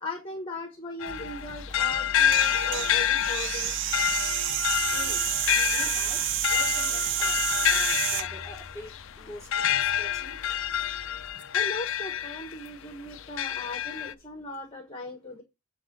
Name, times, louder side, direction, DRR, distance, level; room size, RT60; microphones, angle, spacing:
voice 1, 0.0-3.7 11.5-15.4, left 1 dB, 25° left, 1.2 m, -38 dB
sound 1, 1.0-12.7 13.2-14.1, left 10 dB, 60° left, 0.4 m, -28 dB
sound 2, 1.1-14.4, left 1 dB, 90° right, 1.7 m, -46 dB
sound 3, 2.1-8.3, right 13 dB, 55° right, 0.4 m, -29 dB
voice 2, 4.9-6.2 6.5-10.4, equal, 15° right, 3.9 m, -46 dB
8.3 x 3.7 x 5.3 m
head